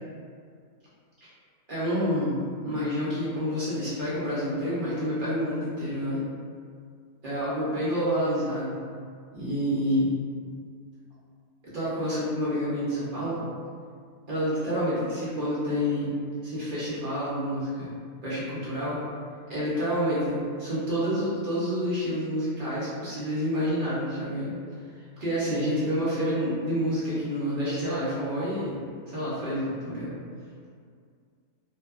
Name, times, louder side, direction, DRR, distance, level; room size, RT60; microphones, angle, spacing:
voice 1, 1.7-6.2 7.2-8.7 9.3-10.2 11.7-13.5 14.3-16.1 16.4-17.9 18.2-19.0 19.5-24.6 25.2-28.8 29.1-30.1, equal, 50° right, -10 dB, 0.6 m, -28 dB
2.6 x 2.2 x 2.3 m, 2.2 s
omnidirectional pair, 1.5 m